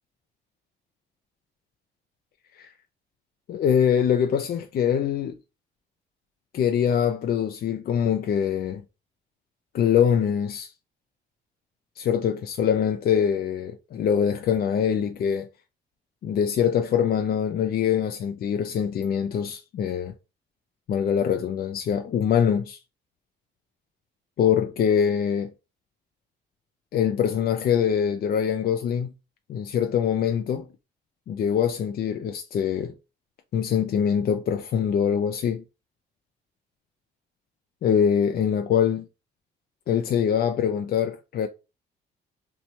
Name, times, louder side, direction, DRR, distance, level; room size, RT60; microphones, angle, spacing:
voice 1, 3.5-5.4 6.5-8.8 9.7-10.7 12.0-15.5 16.2-20.1 20.9-22.8 24.4-25.5 26.9-29.1 29.5-30.7 31.3-32.9 33.5-35.6 37.8-39.1 39.9-41.5, left 8 dB, 50° left, 0.4 m, -23 dB
2.9 x 2.2 x 4.1 m
cardioid pair, 90°, 20 cm